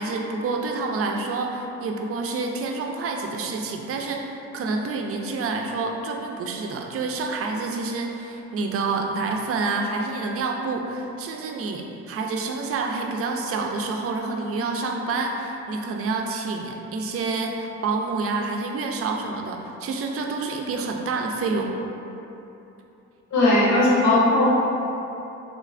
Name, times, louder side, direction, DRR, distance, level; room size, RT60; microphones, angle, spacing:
voice 1, 0.0-21.7, right 3 dB, 50° right, 2 dB, 0.4 m, -28 dB
voice 2, 23.3-24.5, left 2 dB, 75° left, -8 dB, 1.1 m, -18 dB
3.8 x 3.2 x 2.4 m, 3.0 s
cardioid pair, 90°, 30 cm